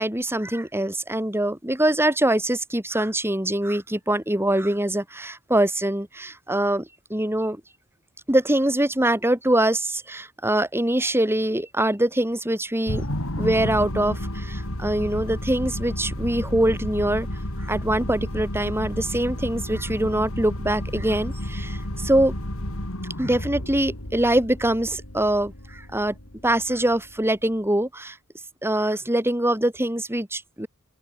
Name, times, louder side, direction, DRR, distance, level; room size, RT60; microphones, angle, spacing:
voice 1, 0.0-7.6 8.3-13.0 13.4-17.3 17.6-22.3 23.2-26.1 26.4-28.2 28.6-30.7, right 1 dB, 10° right, 4.9 m, -23 dB
sound 1, 12.9-27.4, left 1 dB, 65° left, 4.8 m, -31 dB
open air
head